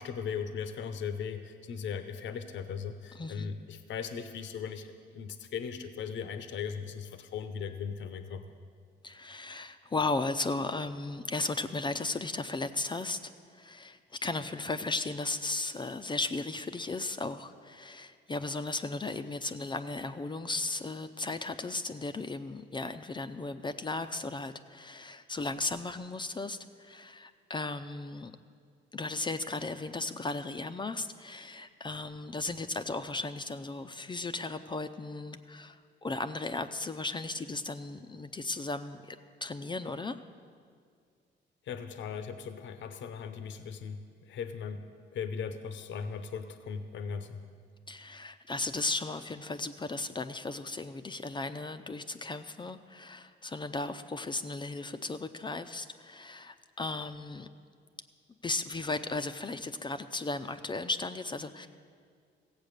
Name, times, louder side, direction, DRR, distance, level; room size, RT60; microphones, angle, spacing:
voice 1, 0.0-8.4 41.7-44.8 45.1-47.4, left 6 dB, 70° left, 9 dB, 0.8 m, -38 dB
voice 2, 3.1-3.5 9.0-28.3 28.9-39.2 39.4-40.2 47.9-57.5 58.4-61.7, left 3 dB, 25° left, 9 dB, 0.5 m, -36 dB
15.5 x 8.1 x 6.6 m, 2.1 s
cardioid pair, 90°, 20 cm